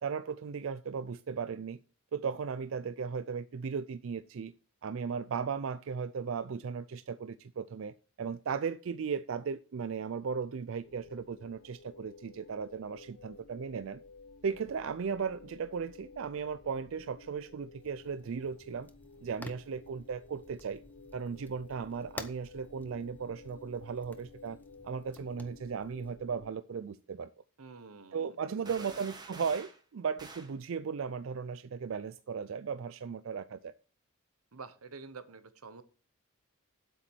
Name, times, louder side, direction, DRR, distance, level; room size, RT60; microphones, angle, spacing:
voice 1, 0.0-1.8 2.1-4.5 4.8-14.0 14.4-18.9 19.2-20.8 21.1-24.6 24.8-27.3 28.1-33.7, right 6 dB, 65° right, 0.4 m, -36 dB
sound 1, 10.8-26.5, left 3 dB, 85° left, 0.7 m, -54 dB
Fire, 17.8-26.1, left 1 dB, 10° left, 0.6 m, -52 dB
voice 2, 27.6-28.9 34.5-35.8, right 4 dB, 90° right, 1.0 m, -48 dB
sound 2, 28.7-29.8 30.2-30.6, right 3 dB, 20° right, 1.2 m, -48 dB
8.9 x 8.2 x 4.5 m
head